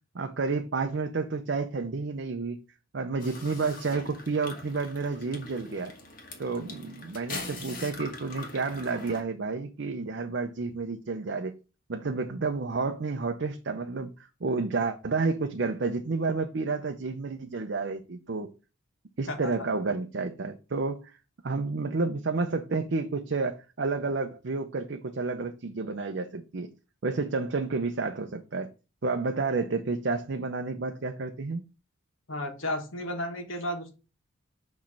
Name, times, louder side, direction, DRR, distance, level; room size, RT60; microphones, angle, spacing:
voice 1, 0.1-2.6 2.9-5.9 6.4-11.5 11.9-18.5 19.2-21.1 21.4-26.7 27.0-28.7 29.0-31.7, right 4 dB, 55° right, 0.6 m, -30 dB
sound 1, 3.2-9.2, left 2 dB, 40° left, 1.4 m, -42 dB
voice 2, 32.3-33.9, left 1 dB, 75° left, 1.5 m, -33 dB
6.3 x 3.2 x 5.8 m
head